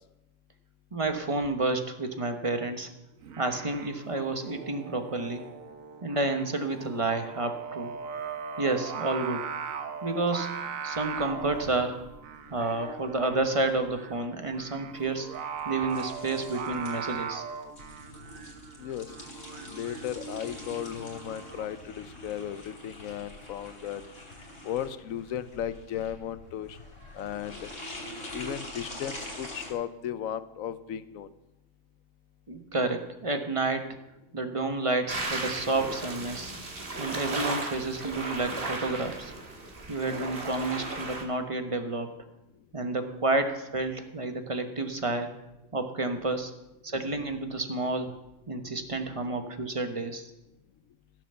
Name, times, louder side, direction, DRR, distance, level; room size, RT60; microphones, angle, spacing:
voice 1, 0.9-2.9 3.4-5.4 6.0-7.9 8.6-9.5 10.0-12.0 12.5-15.3 15.7-17.4 32.5-34.0 34.3-36.5 37.0-39.3 39.9-42.1 42.7-45.3 45.7-46.5 46.8-48.2 48.5-50.3, right 2 dB, 25° right, 6 dB, 1.1 m, -30 dB
Singing, 3.2-21.7, right 7 dB, 80° right, 1.3 m, -40 dB
sound 1, 10.9-29.7, left 1 dB, 55° left, 3.3 m, -45 dB
voice 2, 18.8-19.1 19.7-24.0 24.6-26.8 27.1-27.7 28.3-31.3, left 10 dB, 85° left, 14 dB, 1.1 m, -35 dB
sound 2, 35.1-41.2, right 2 dB, 45° right, 1.8 m, -35 dB
15.5 x 6.8 x 6.8 m, 0.92 s
omnidirectional pair, 1.4 m